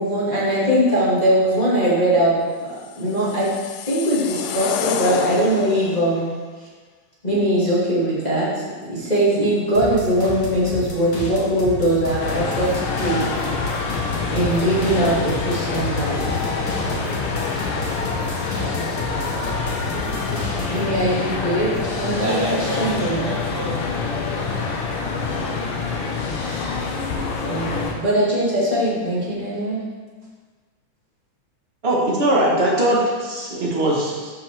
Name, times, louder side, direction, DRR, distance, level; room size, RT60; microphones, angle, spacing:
voice 1, 0.0-3.5 3.9-6.3 7.2-8.5 8.8-12.7 13.0-13.3 14.3-16.3 20.7-23.3 27.4-29.8, right 1 dB, 15° left, -9 dB, 1.7 m, -21 dB
sound 1, 2.9-6.1, left 10 dB, 90° left, 2.1 m, -29 dB
sound 2, 9.7-20.9 21.3-22.7, left 2 dB, 45° left, 1.1 m, -32 dB
sound 3, 12.2-27.9, left 4 dB, 65° left, 1.5 m, -26 dB
voice 2, 22.2-24.9, right 1 dB, 80° right, -7 dB, 3.7 m, -30 dB
voice 3, 31.8-34.3, right 1 dB, 50° right, -4 dB, 0.7 m, -20 dB
13.0 x 5.3 x 3.5 m, 1.4 s
omnidirectional pair, 3.6 m